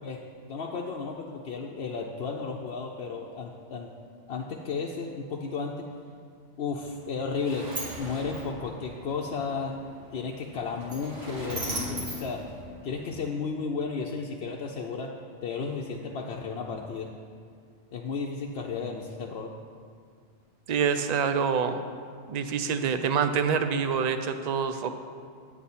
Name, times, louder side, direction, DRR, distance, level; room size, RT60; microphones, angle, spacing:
voice 1, 0.5-3.9 4.3-5.9 6.6-7.7 8.0-9.7 10.1-12.5 12.8-15.1 15.4-17.1 17.9-19.5, left 5 dB, 65° left, -1 dB, 0.8 m, -33 dB
Sliding door, 6.8-13.2, equal, 75° right, 2.1 m, -38 dB
voice 2, 20.7-21.8 22.3-24.9, right 6 dB, 55° right, 9 dB, 0.5 m, -26 dB
9.2 x 8.4 x 4.2 m, 2.1 s
omnidirectional pair, 1.2 m